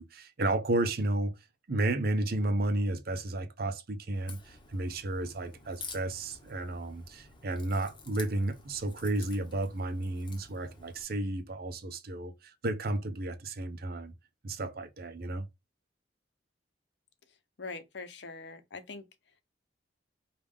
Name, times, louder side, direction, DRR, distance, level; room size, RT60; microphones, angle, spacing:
voice 1, 0.0-1.3 1.7-14.1 14.4-15.5, right 2 dB, 55° right, 0.7 m, -32 dB
Crack, 4.1-11.0, left 4 dB, 25° left, 1.0 m, -50 dB
voice 2, 17.6-19.0, left 3 dB, 70° left, 0.7 m, -42 dB
5.3 x 2.4 x 3.5 m
head